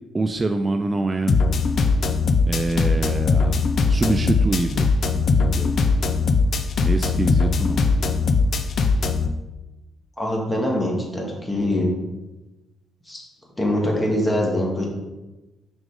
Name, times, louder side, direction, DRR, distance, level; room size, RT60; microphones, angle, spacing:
voice 1, 0.1-1.4 2.5-5.7 6.8-7.8, right 2 dB, 25° right, 6 dB, 0.3 m, -25 dB
sound 1, 1.3-9.3, left 4 dB, 55° left, 0.5 m, -20 dB
voice 2, 10.2-11.9 13.1-13.2 13.6-14.9, left 1 dB, 15° left, -2 dB, 1.9 m, -23 dB
6.1 x 5.2 x 3.7 m, 1.1 s
cardioid pair, 90°, 0 cm